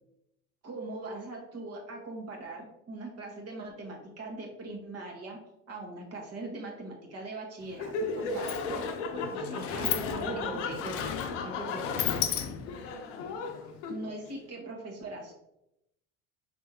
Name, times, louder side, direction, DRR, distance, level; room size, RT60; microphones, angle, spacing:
voice 1, 0.6-5.4 5.7-8.9 9.3-10.8 13.9-15.3, right 2 dB, 40° right, 0 dB, 1.5 m, -41 dB
Sliding door, 7.6-7.7 8.0-12.9, left 9 dB, 40° left, 0.5 m, -35 dB
Laughter, 7.7-14.3, left 4 dB, 75° left, 0.7 m, -36 dB
voice 2, 9.1-12.7, right 1 dB, 15° right, -3 dB, 1.4 m, -42 dB
5.3 x 3.4 x 2.9 m, 0.86 s
hypercardioid pair, 75°, 37 cm